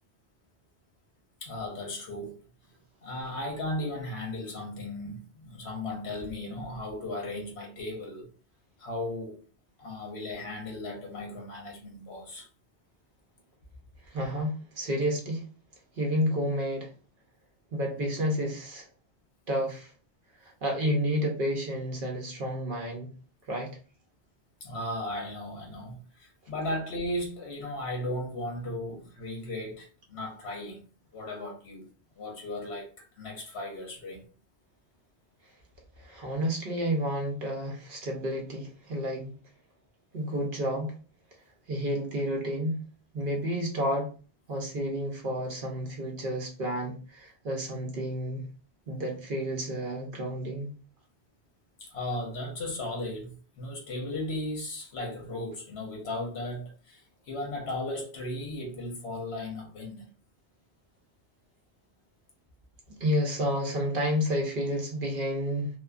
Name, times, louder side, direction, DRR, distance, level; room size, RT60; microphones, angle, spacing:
voice 1, 1.4-2.4 3.0-8.3 8.8-9.4 9.8-12.5 24.6-30.8 31.1-31.9 32.1-34.2 51.8-60.1, left 1 dB, 70° left, 1.2 m, -36 dB
voice 2, 14.1-15.4 16.0-16.9 17.7-18.9 19.5-19.9 20.4-23.1 23.5-23.8 36.0-39.3 40.1-40.9 41.7-42.8 43.1-44.1 44.5-48.5 48.9-50.7 63.0-65.7, equal, 55° right, 0.8 m, -30 dB
3.0 x 2.2 x 2.4 m
omnidirectional pair, 1.1 m